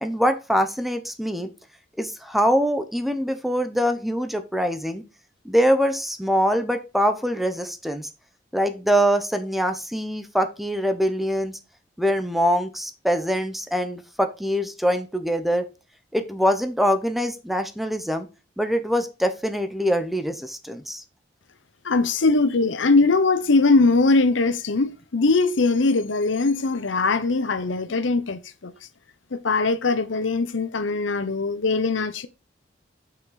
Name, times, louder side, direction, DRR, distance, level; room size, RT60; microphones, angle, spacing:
voice 1, 0.0-1.5 2.0-5.0 5.4-8.1 8.5-11.6 12.0-15.7 16.1-18.3 18.6-21.0, equal, ahead, 0.8 m, -23 dB
voice 2, 21.8-28.7 29.3-32.3, left 3 dB, 85° left, 0.8 m, -21 dB
7.5 x 5.9 x 4.0 m
head